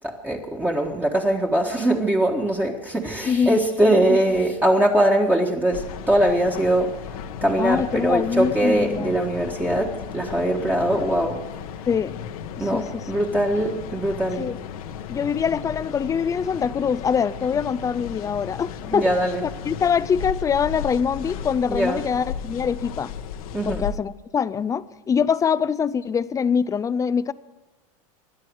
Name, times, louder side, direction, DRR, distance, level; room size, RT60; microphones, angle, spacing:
voice 1, 0.0-7.0 7.4-11.4 12.6-14.5 18.9-19.4 21.7-22.0 23.5-23.8, right 1 dB, 10° right, 1.5 m, -22 dB
voice 2, 3.2-3.6 7.6-9.1 11.9-12.1 12.6-12.9 14.4-14.6 15.1-19.1 19.4-23.1 23.7-27.3, left 7 dB, 20° left, 0.5 m, -24 dB
sound 1, 5.7-24.0, left 8 dB, 85° left, 1.3 m, -35 dB
25.0 x 11.0 x 4.7 m
supercardioid pair, 125°, 18 cm